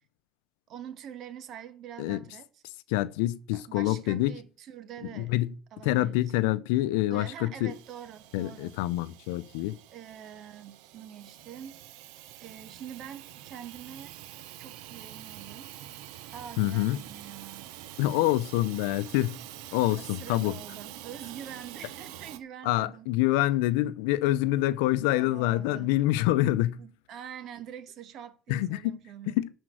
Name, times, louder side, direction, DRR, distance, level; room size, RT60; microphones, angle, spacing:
voice 1, 0.7-2.6 3.5-5.3 5.7-6.3 7.1-8.8 9.9-11.8 12.4-14.2 14.6-15.7 16.3-17.8 18.1-18.3 20.0-23.1 25.1-25.9 26.8-29.3, right 9 dB, 60° right, 1.5 m, -45 dB
voice 2, 2.9-4.3 5.1-5.5 5.8-7.7 8.3-9.8 16.6-17.0 18.0-19.4 19.7-20.6 22.6-26.8 28.5-29.0 29.4-29.5, left 16 dB, 85° left, 0.6 m, -26 dB
Hiss / Toilet flush / Trickle dribble, 7.7-22.4, right 13 dB, 80° right, 0.8 m, -46 dB
12.0 x 4.5 x 7.7 m
supercardioid pair, 85°, 0 cm